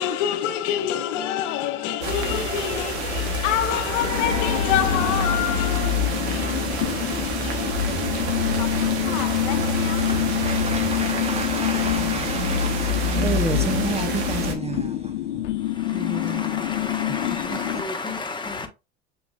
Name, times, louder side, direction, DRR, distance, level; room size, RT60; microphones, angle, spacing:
voice 1, 0.0-8.2 8.6-10.1, left 10 dB, 65° left, 0.9 m, -27 dB
sound 1, 2.0-14.5, equal, 80° right, 1.1 m, -26 dB
sound 2, 4.0-17.8, left 14 dB, 90° left, 0.5 m, -27 dB
voice 2, 9.9-15.6 15.9-16.8 17.1-17.9, right 3 dB, 20° right, 0.8 m, -32 dB
voice 3, 11.8-12.3 15.3-18.7, left 3 dB, 15° left, 1.3 m, -33 dB
6.8 x 3.0 x 2.4 m
hypercardioid pair, 75°, 34 cm